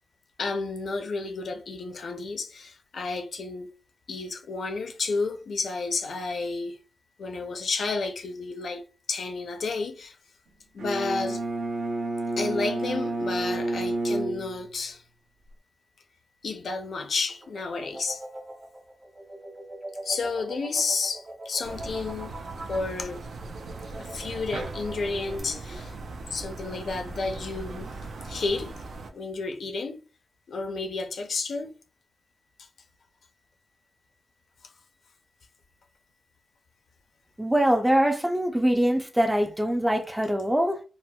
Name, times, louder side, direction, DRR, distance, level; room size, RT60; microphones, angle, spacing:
voice 1, 0.4-3.7 4.1-6.8 7.2-10.2 10.7-11.4 12.4-15.0 16.4-18.2 20.0-22.4 22.7-23.3 23.9-26.0 26.3-27.9 28.2-28.8 29.1-30.0 30.5-31.8, left 4 dB, 65° left, 0.5 m, -31 dB
Bowed string instrument, 10.8-15.0, right 2 dB, 90° right, 0.9 m, -30 dB
sound 1, 16.9-25.4, right 1 dB, 30° right, 0.7 m, -42 dB
sound 2, 21.6-29.1, right 3 dB, 70° right, 0.5 m, -39 dB
voice 2, 37.4-40.8, equal, 5° right, 0.4 m, -23 dB
4.2 x 2.1 x 2.2 m
wide cardioid pair, 170°, 0 cm